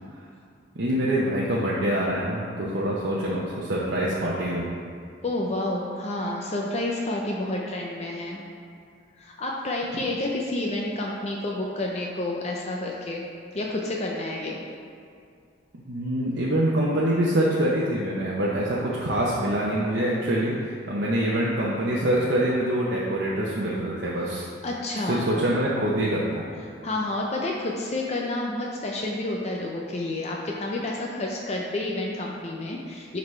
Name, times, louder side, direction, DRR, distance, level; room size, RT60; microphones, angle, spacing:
voice 1, 0.7-4.7 15.9-24.5 25.1-26.2, right 1 dB, 65° right, -6 dB, 0.8 m, -25 dB
voice 2, 5.2-8.4 9.2-13.2 13.5-14.6 24.6-25.2 26.8-33.2, left 2 dB, 35° left, -1 dB, 0.5 m, -29 dB
11.0 x 4.0 x 3.2 m, 2.4 s
head